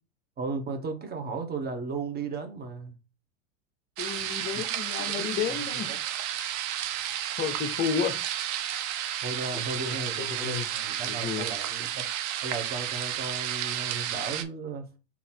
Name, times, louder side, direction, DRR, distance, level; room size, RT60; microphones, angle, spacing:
voice 1, 0.4-2.9 5.0-5.4 5.9-6.0 9.2-12.1 12.4-14.9, right 4 dB, 25° right, 1.1 m, -35 dB
voice 2, 4.0-6.0 7.2-8.2 9.8-10.7 11.1-11.5, left 8 dB, 25° left, 0.6 m, -32 dB
sound 1, 4.0-14.4, right 11 dB, 45° right, 0.7 m, -32 dB
4.0 x 2.9 x 4.3 m
supercardioid pair, 115°, 38 cm